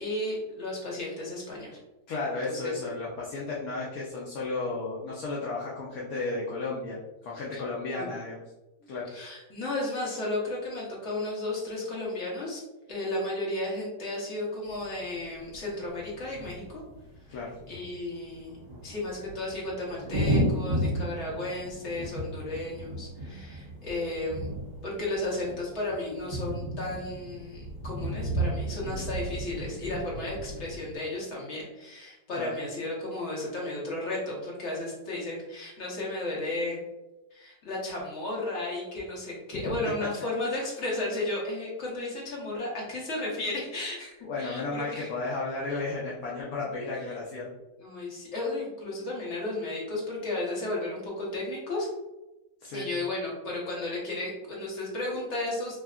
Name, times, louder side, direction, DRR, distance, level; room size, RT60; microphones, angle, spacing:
voice 1, 0.0-1.8 2.4-2.7 7.5-7.6 7.9-8.1 9.1-12.6 12.9-16.8 17.7-36.8 37.3-45.1 46.9-47.2 47.8-51.9 52.7-55.8, left 2 dB, 45° left, -5 dB, 1.2 m, -34 dB
voice 2, 2.1-8.4 8.9-9.1 17.3-17.6 32.3-32.5 39.5-39.8 44.2-47.5 52.6-52.9, left 3 dB, 65° left, -5 dB, 0.9 m, -33 dB
sound 1, 14.6-31.0, right 1 dB, 45° right, 1.6 m, -34 dB
3.3 x 2.6 x 2.3 m, 1.0 s
omnidirectional pair, 1.8 m